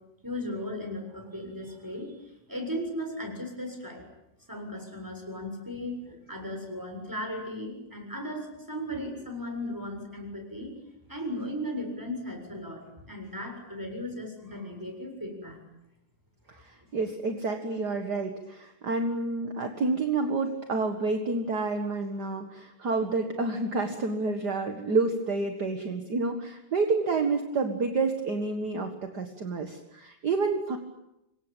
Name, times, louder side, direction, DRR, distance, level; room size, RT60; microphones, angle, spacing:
voice 1, 0.2-2.2 2.5-4.0 4.5-10.7 11.1-15.6 16.5-16.6, left 1 dB, 10° right, 3 dB, 7.3 m, -36 dB
voice 2, 16.5-30.8, right 3 dB, 50° right, 5 dB, 2.3 m, -29 dB
27.0 x 24.0 x 9.2 m, 0.88 s
omnidirectional pair, 2.4 m